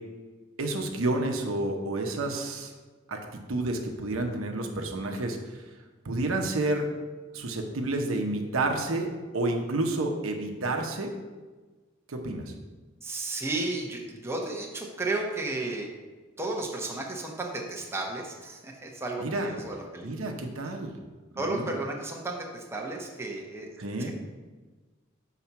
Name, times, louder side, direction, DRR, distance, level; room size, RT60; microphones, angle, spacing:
voice 1, 0.6-2.7 3.1-5.6 6.0-6.9 7.3-11.1 12.1-12.5 19.2-19.5 20.0-20.9 21.5-21.7 23.8-24.1, right 2 dB, 85° right, 3 dB, 0.8 m, -30 dB
voice 2, 13.0-15.9 16.4-20.3 21.4-23.7 24.0-24.1, right 2 dB, 10° right, -1 dB, 0.8 m, -33 dB
5.8 x 4.0 x 5.8 m, 1.3 s
head